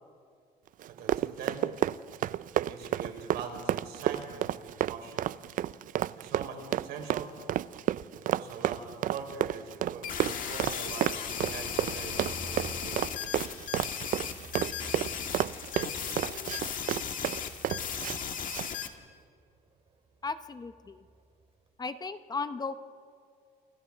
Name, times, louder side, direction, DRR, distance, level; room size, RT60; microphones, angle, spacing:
Run, 0.8-18.2 18.5-18.7, right 12 dB, 55° right, 0.4 m, -31 dB
voice 1, 0.9-1.7 2.5-5.3 6.2-7.3 8.3-13.2, right 5 dB, 75° right, 2 dB, 4.2 m, -42 dB
Fixed-wing aircraft airplane, 8.2-21.7, right 4 dB, 35° right, 2.8 m, -52 dB
sound 1, 10.0-18.9, left 8 dB, 50° left, 1.7 m, -36 dB
voice 2, 20.2-21.1 21.8-22.8, left 4 dB, 25° left, 11 dB, 0.7 m, -36 dB
29.0 x 25.5 x 3.6 m, 2.2 s
cardioid pair, 110°, 17 cm